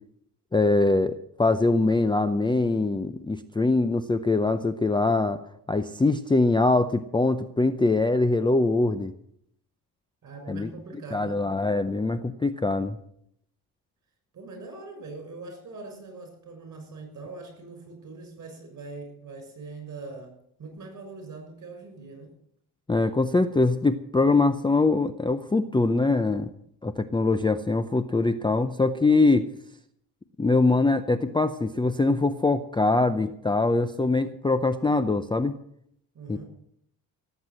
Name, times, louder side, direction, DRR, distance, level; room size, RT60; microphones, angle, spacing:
voice 1, 0.5-5.4 5.7-9.1 10.5-10.7 11.1-13.0 22.9-26.5 26.8-29.5 30.4-35.5 36.3-36.4, left 3 dB, 10° left, 11 dB, 0.6 m, -23 dB
voice 2, 10.2-11.4 14.3-20.3 20.6-22.3 36.1-36.4, right 3 dB, 45° right, 6 dB, 6.5 m, -42 dB
18.0 x 8.1 x 7.6 m, 0.71 s
cardioid pair, 120°, 41 cm